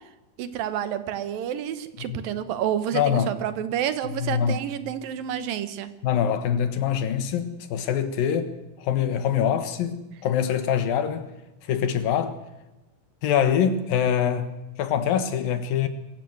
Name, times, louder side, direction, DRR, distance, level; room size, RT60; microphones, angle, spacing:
voice 1, 0.4-5.9, right 10 dB, 70° right, 2.9 m, -29 dB
voice 2, 2.9-3.3 4.2-4.6 6.0-8.5 8.8-11.3 11.7-12.4 13.2-14.5 14.8-15.9, left 8 dB, 70° left, 3.1 m, -24 dB
24.5 x 15.0 x 8.0 m
omnidirectional pair, 4.3 m